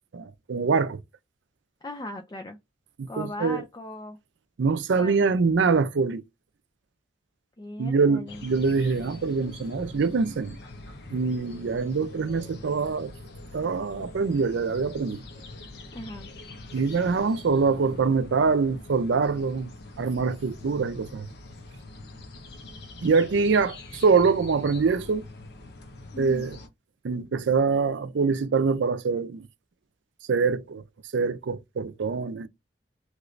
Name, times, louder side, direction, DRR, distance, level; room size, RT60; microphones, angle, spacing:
voice 1, 0.1-1.0 3.0-3.6 4.6-6.2 7.8-10.6 11.1-13.1 13.5-15.2 16.7-19.7 20.0-21.3 23.0-25.3 26.2-26.6 27.0-29.5 30.3-30.8 31.1-32.5, right 4 dB, 80° right, 0.4 m, -24 dB
voice 2, 1.8-2.6 3.1-4.2 5.0-5.2 7.6-8.4 15.9-16.3 26.1-26.5, left 1 dB, 20° left, 0.4 m, -38 dB
sound 1, 8.3-26.7, left 2 dB, 60° left, 0.8 m, -44 dB
2.9 x 2.6 x 3.1 m
head